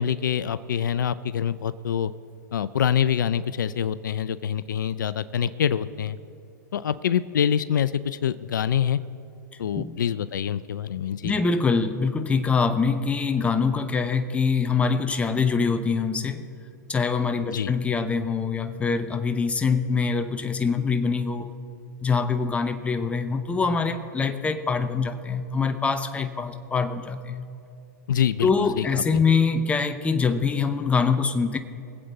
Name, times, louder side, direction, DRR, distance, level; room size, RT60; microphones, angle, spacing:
voice 1, 0.0-2.1 2.5-6.2 6.7-9.0 9.6-11.4 17.5-17.7 28.1-29.0, left 8 dB, 80° left, 15 dB, 0.5 m, -25 dB
voice 2, 11.2-16.4 16.9-21.5 22.0-27.5 28.4-31.6, left 5 dB, 10° left, 9 dB, 0.8 m, -24 dB
23.0 x 8.0 x 4.0 m, 2.5 s
hypercardioid pair, 115°, 10 cm